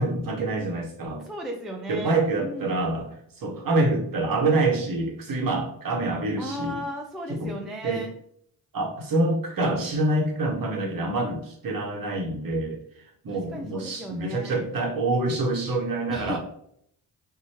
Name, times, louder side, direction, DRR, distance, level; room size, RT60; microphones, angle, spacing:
voice 1, 0.0-1.2 1.9-3.1 3.4-6.8 7.3-7.5 7.8-8.0 8.7-16.4, right 2 dB, 45° right, 1 dB, 1.0 m, -26 dB
voice 2, 1.2-2.8 6.4-8.1 13.3-14.6 16.1-16.4, equal, ahead, 1 dB, 0.4 m, -36 dB
3.0 x 2.2 x 2.9 m, 0.69 s
hypercardioid pair, 45°, 48 cm